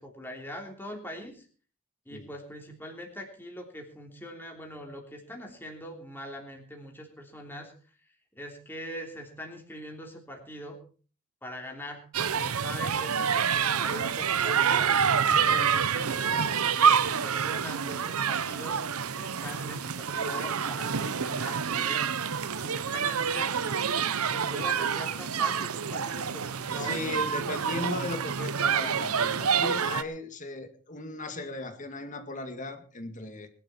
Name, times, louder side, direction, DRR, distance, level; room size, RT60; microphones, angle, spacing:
voice 1, 0.0-1.5 2.0-7.7 8.3-10.8 11.4-12.0 12.3-14.9 15.3-18.8 19.2-27.1, equal, 10° left, 3.2 m, -42 dB
sound 1, 12.1-30.0, right 7 dB, 80° right, 0.9 m, -27 dB
voice 2, 26.5-33.5, left 2 dB, 35° left, 2.0 m, -37 dB
21.0 x 11.5 x 4.4 m
head